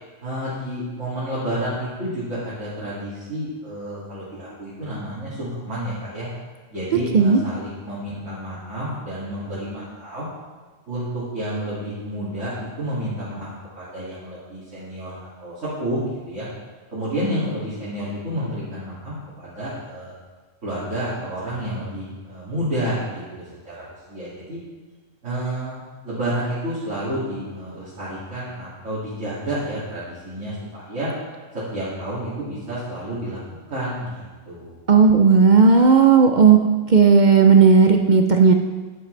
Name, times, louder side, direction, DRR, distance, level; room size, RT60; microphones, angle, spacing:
voice 1, 0.2-6.3 6.7-10.2 10.9-13.5 13.8-15.5 15.8-16.5 16.9-20.1 20.6-23.2 23.6-24.6 25.2-31.1 31.7-33.4 33.7-34.7, right 1 dB, 65° right, -10 dB, 2.9 m, -30 dB
voice 2, 34.9-36.6 36.9-38.5, right 5 dB, 50° right, 4 dB, 0.6 m, -13 dB
11.0 x 10.0 x 3.3 m, 1.3 s
omnidirectional pair, 1.3 m